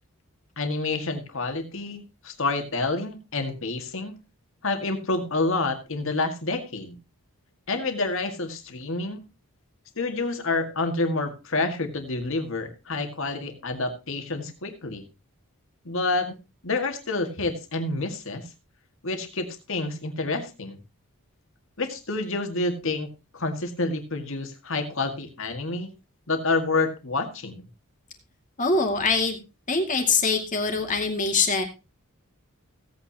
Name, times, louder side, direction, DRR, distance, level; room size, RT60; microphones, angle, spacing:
voice 1, 0.6-4.2 4.6-7.0 7.7-9.2 10.0-15.0 15.8-16.4 16.6-18.5 19.0-20.8 21.8-23.1 23.3-25.9 26.3-27.6, left 3 dB, 60° left, 6 dB, 1.9 m, -28 dB
voice 2, 28.6-29.4 29.7-31.6, left 4 dB, 35° left, 3 dB, 2.2 m, -23 dB
16.5 x 8.7 x 2.9 m, 0.27 s
head